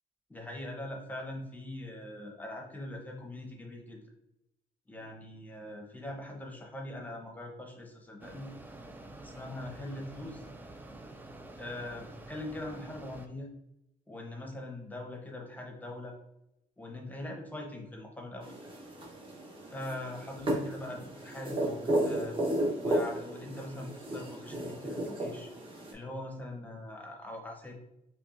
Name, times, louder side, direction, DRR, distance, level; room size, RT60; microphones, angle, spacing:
voice 1, 0.3-4.1 4.9-8.5 9.2-10.5 11.6-13.5 14.1-16.2 16.8-18.6 19.7-22.4 22.8-25.5 25.9-27.8, left 1 dB, 10° left, 1 dB, 0.7 m, -42 dB
Mechanisms, 8.2-13.3, right 2 dB, 10° right, 0.3 m, -48 dB
sound 1, 18.4-25.9, right 1 dB, 35° right, 1.0 m, -34 dB
5.7 x 2.2 x 2.5 m, 0.84 s
cardioid pair, 140°, 16 cm